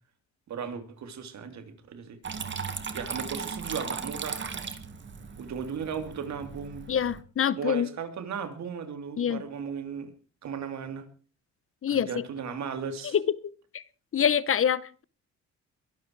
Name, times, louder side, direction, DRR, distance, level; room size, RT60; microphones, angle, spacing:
voice 1, 0.5-2.2 2.9-4.6 5.4-6.8 7.5-10.1 10.4-11.0 11.9-13.2, right 6 dB, 65° right, 8 dB, 3.1 m, -36 dB
Water tap faucet / Trickle dribble, 2.2-7.2, right 5 dB, 40° right, 2.1 m, -37 dB
voice 2, 6.9-7.9 9.2-9.4 11.8-12.2 13.1-13.3 13.7-13.8 14.1-15.0, left 8 dB, 45° left, 18 dB, 0.9 m, -25 dB
22.5 x 12.5 x 4.7 m, 0.39 s
cardioid pair, 90°, 30 cm